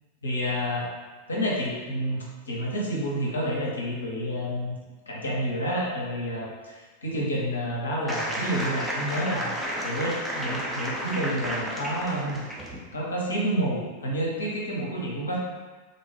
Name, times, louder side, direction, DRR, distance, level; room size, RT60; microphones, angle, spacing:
voice 1, 0.2-0.9 1.3-4.8 5.1-9.5 9.8-12.4 12.9-15.4, equal, 70° left, -4 dB, 0.6 m, -29 dB
sound 1, 8.1-12.8, equal, 5° right, 0.5 m, -32 dB
2.6 x 2.2 x 3.0 m, 1.3 s
figure-of-eight pair, 90°, 0 cm